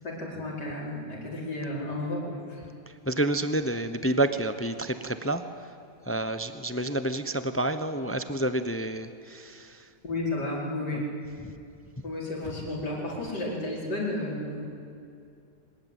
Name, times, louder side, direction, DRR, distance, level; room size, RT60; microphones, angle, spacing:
voice 1, 0.0-2.7 10.0-11.1 12.0-14.6, left 1 dB, 80° left, -2 dB, 5.5 m, -32 dB
voice 2, 3.1-5.4 6.1-9.8 10.9-11.0, right 1 dB, 10° left, 10 dB, 0.6 m, -29 dB
24.0 x 20.5 x 9.2 m, 2.5 s
omnidirectional pair, 1.8 m